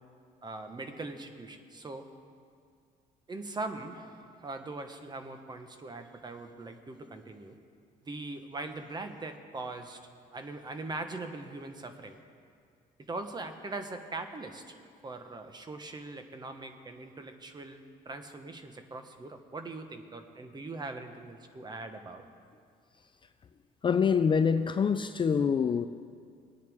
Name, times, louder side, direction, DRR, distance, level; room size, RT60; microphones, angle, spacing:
voice 1, 0.4-2.1 3.3-7.6 8.0-10.0 10.3-12.2 13.0-14.6 15.0-22.2, right 2 dB, 25° right, 1.1 m, -41 dB
voice 2, 23.8-25.9, left 6 dB, 30° left, 0.4 m, -25 dB
20.5 x 9.4 x 3.6 m
cardioid pair, 110°, 17 cm